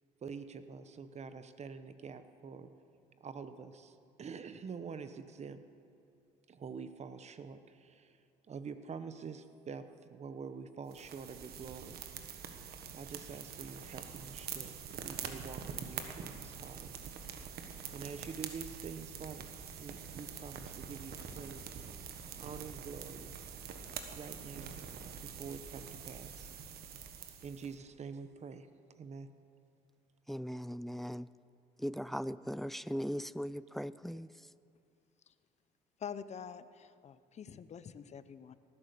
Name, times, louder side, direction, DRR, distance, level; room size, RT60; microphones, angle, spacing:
voice 1, 0.2-2.7 3.2-5.6 6.5-8.2 8.5-12.0 12.9-16.9 17.9-21.7 22.4-23.4 24.2-24.8 25.2-26.5 27.4-28.7 29.0-29.3, right 5 dB, 40° right, 1.0 m, -46 dB
sound 1, 10.9-27.7, right 7 dB, 65° right, 1.5 m, -45 dB
voice 2, 30.3-31.3 31.8-34.3, equal, ahead, 0.3 m, -39 dB
voice 3, 36.0-38.5, left 7 dB, 40° left, 0.7 m, -46 dB
18.5 x 10.0 x 6.8 m
supercardioid pair, 85°, 17 cm